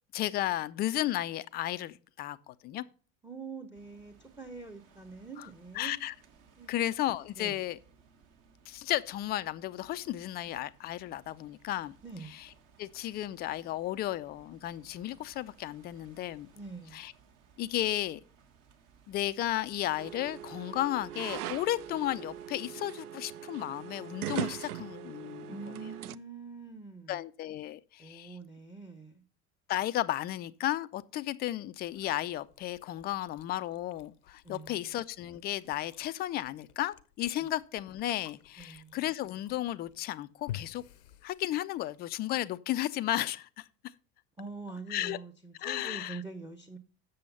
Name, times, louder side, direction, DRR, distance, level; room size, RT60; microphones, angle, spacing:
voice 1, 0.1-2.8 5.4-5.5 5.7-6.1 6.7-7.8 8.7-12.0 12.3-12.5 12.8-16.5 16.9-17.1 17.6-18.2 19.1-25.6 27.1-28.4 29.7-40.8 41.2-43.7 44.9-45.2 45.6-46.2, left 14 dB, 25° left, 0.3 m, -34 dB
voice 2, 3.2-6.0 6.6-6.8 7.4-7.6 12.0-12.3 16.5-17.1 25.5-27.2 28.0-29.2 34.4-34.8 37.4-37.5 38.6-39.0 44.4-46.8, right 4 dB, 5° right, 0.8 m, -44 dB
sound 1, 3.7-22.5, right 6 dB, 45° right, 1.5 m, -62 dB
sound 2, 20.0-26.2, right 11 dB, 75° right, 0.5 m, -40 dB
Chewing mastication, 31.8-42.0, left 12 dB, 70° left, 0.7 m, -51 dB
7.7 x 6.8 x 5.4 m
figure-of-eight pair, 70°, 45 cm